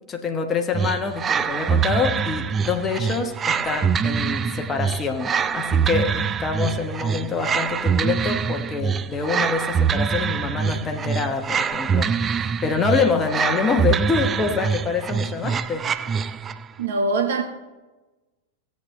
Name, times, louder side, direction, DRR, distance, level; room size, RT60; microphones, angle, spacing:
voice 1, 0.1-15.9, left 5 dB, 20° left, 1.1 m, -26 dB
sound 1, 0.7-16.7, right 6 dB, 20° right, 0.3 m, -24 dB
voice 2, 16.8-17.4, right 3 dB, 60° right, 1.1 m, -22 dB
16.5 x 8.3 x 3.2 m
figure-of-eight pair, 90°, 0 cm